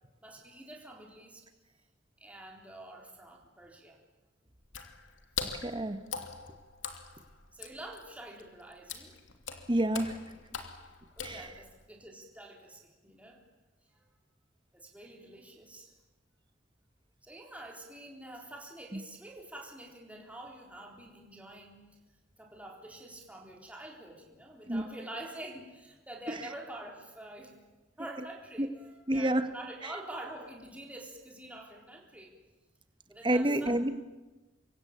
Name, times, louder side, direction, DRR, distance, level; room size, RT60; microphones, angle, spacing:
voice 1, 0.2-1.4 2.2-4.0 7.5-9.2 11.2-13.4 13.9-14.0 14.7-15.9 17.2-21.8 22.4-27.6 28.0-32.3 33.1-33.7, right 1 dB, 10° right, 0 dB, 3.9 m, -47 dB
Water / Splash splatter, 4.6-11.9, left 6 dB, 80° left, 2.8 m, -42 dB
voice 2, 5.5-6.0 9.7-10.3 11.2-11.5 18.9-19.0 24.7-24.8 28.6-28.7 29.1-29.5 29.8-29.9 33.2-33.9, right 1 dB, 25° right, 9 dB, 1.5 m, -29 dB
26.5 x 23.0 x 8.8 m, 1.1 s
head